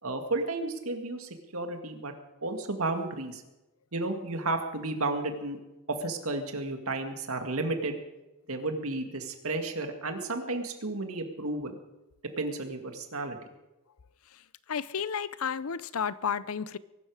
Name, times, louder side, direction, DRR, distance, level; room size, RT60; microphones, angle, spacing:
voice 1, 0.0-2.1 2.4-3.4 3.9-5.6 5.9-8.0 8.5-11.7 12.4-13.4, right 2 dB, 80° right, 2.1 m, -32 dB
voice 2, 14.7-16.8, left 7 dB, 80° left, 0.6 m, -32 dB
22.5 x 12.0 x 4.9 m
head